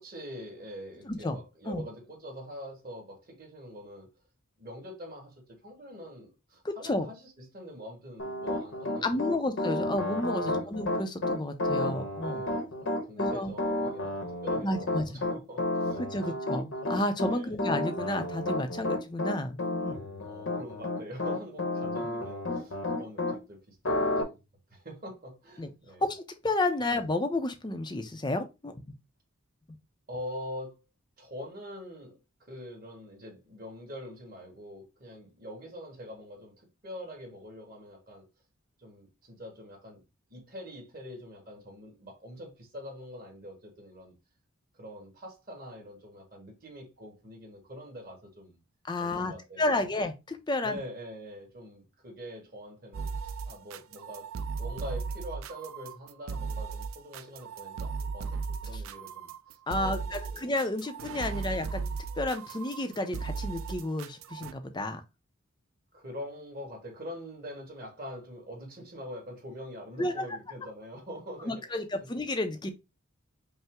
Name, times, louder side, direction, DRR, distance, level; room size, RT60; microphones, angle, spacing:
voice 1, 0.0-4.1 4.6-9.4 10.4-10.8 12.2-16.4 17.3-17.6 20.2-24.4 24.7-26.0 30.1-30.8 31.2-36.5 36.8-38.3 38.8-40.0 40.3-44.1 44.7-48.6 49.0-49.8 50.6-60.5 61.3-61.5 65.9-71.8, equal, 40° right, 1.5 m, -44 dB
voice 2, 1.1-1.4 1.7-1.8 6.6-7.1 9.0-12.4 13.2-13.5 14.6-15.2 16.0-20.0 25.6-25.7 26.0-28.8 48.9-50.8 58.7-58.8 59.7-65.0 70.0-70.3 71.5-72.7, left 2 dB, 20° left, 0.5 m, -31 dB
Piano, 8.2-23.4 23.8-24.2, left 1 dB, 65° left, 0.9 m, -31 dB
sound 1, 52.9-64.5, right 5 dB, 70° right, 0.4 m, -36 dB
5.4 x 2.0 x 3.5 m
head